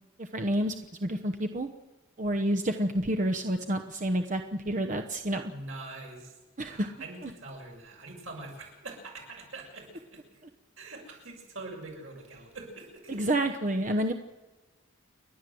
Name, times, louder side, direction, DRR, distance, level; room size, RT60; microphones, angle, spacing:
voice 1, 0.2-0.7 1.0-1.7 2.2-5.5 6.6-6.9 7.2-7.3 13.1-14.1, right 1 dB, 40° right, 6 dB, 1.0 m, -29 dB
voice 2, 5.5-6.3 6.7-10.2 10.8-13.2, right 2 dB, 75° right, 0 dB, 6.8 m, -44 dB
30.0 x 11.5 x 7.8 m, 1.2 s
head